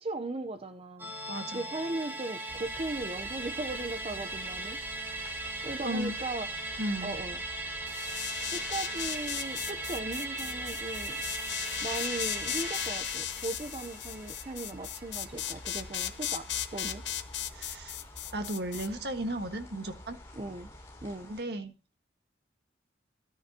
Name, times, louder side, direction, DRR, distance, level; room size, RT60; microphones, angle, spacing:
voice 1, 0.0-1.1 1.5-4.8 5.6-6.5 7.0-7.4 8.5-11.2 11.8-17.0 20.3-20.7 21.0-21.3, right 2 dB, 35° right, 8 dB, 0.7 m, -38 dB
Musical instrument, 1.0-15.7 16.0-16.1, right 2 dB, 10° right, 1.7 m, -38 dB
voice 2, 1.3-1.6 5.8-6.1 6.8-7.2 17.5-17.9 18.3-20.2 21.3-21.7, right 1 dB, 65° right, 7 dB, 1.6 m, -34 dB
sound 1, 2.5-21.4, left 1 dB, 15° left, 7.0 m, -50 dB
sound 2, 7.9-18.9, left 11 dB, 90° left, 1.0 m, -37 dB
13.5 x 9.7 x 2.8 m, 0.29 s
head